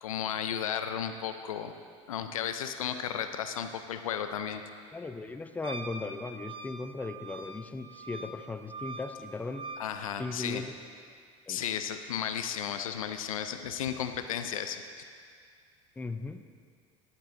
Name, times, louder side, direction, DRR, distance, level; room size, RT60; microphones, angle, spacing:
voice 1, 0.0-1.7 2.1-4.6 9.8-10.6 11.5-14.8, left 9 dB, 85° left, 8 dB, 0.5 m, -34 dB
voice 2, 4.9-9.6 10.2-10.7 11.5-11.6 16.0-16.4, left 3 dB, 10° left, 8 dB, 0.4 m, -37 dB
Wind instrument woodwind instrument, 5.6-9.9, right 3 dB, 30° right, 0.9 m, -43 dB
11.0 x 8.6 x 2.6 m, 2.1 s
hypercardioid pair, 75°, 17 cm